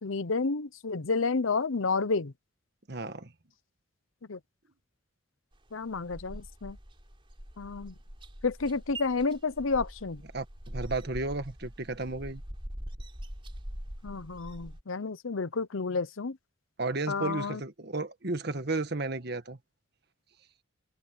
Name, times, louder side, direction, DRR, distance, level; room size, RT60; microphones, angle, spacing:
voice 1, 0.0-2.3 4.3-4.4 5.7-6.8 7.6-7.9 8.4-10.2 14.0-16.4 17.1-17.6, left 4 dB, 80° left, 0.8 m, -30 dB
voice 2, 2.9-3.3 10.3-12.4 16.8-19.6, right 3 dB, 50° right, 1.6 m, -33 dB
sound 1, 5.5-14.8, equal, 25° right, 4.4 m, -43 dB
head